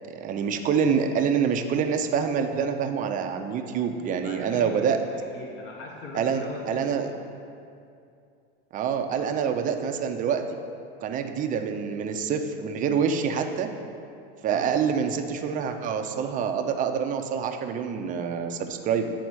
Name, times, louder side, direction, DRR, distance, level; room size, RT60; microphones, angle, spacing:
voice 1, 0.1-5.0 6.1-7.1 8.7-10.4 11.0-13.7 14.4-19.1, right 7 dB, 25° right, 5 dB, 0.5 m, -26 dB
voice 2, 4.2-4.7 5.1-7.2 14.4-14.7, left 3 dB, 40° left, -1 dB, 0.9 m, -40 dB
9.4 x 4.2 x 6.2 m, 2.5 s
supercardioid pair, 140°, 30 cm